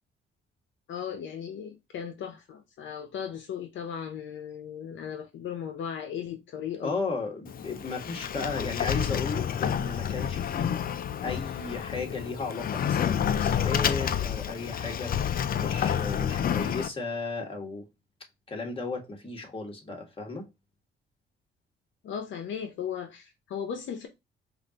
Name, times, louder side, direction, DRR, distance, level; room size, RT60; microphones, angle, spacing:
voice 1, 0.9-6.9 22.0-24.1, left 8 dB, 70° left, 0.8 m, -36 dB
voice 2, 6.8-10.8 11.2-15.1 15.5-17.8 18.5-20.5, left 3 dB, 25° left, 1.7 m, -35 dB
Sliding door, 7.5-16.9, left 9 dB, 45° left, 0.5 m, -29 dB
4.9 x 2.6 x 2.9 m
cardioid pair, 90°, 20 cm